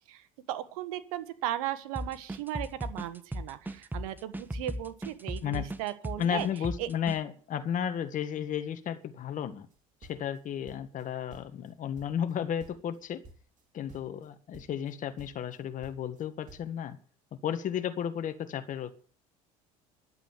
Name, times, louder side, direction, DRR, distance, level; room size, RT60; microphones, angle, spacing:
voice 1, 0.1-6.5 6.8-6.9, right 12 dB, 85° right, 13 dB, 1.5 m, -36 dB
sound 1, 2.0-7.2, right 1 dB, 10° right, 1.3 m, -37 dB
voice 2, 6.2-9.7 10.1-13.2 13.7-17.0 17.4-18.9, left 9 dB, 45° left, 8 dB, 1.7 m, -33 dB
sound 2, 9.7-11.1 11.3-12.3 12.6-13.0 13.2-13.6 13.9-14.3 14.5-14.9 15.2-16.7, right 2 dB, 45° right, 3.7 m, -53 dB
11.5 x 8.2 x 9.3 m, 0.44 s
supercardioid pair, 85°, 18 cm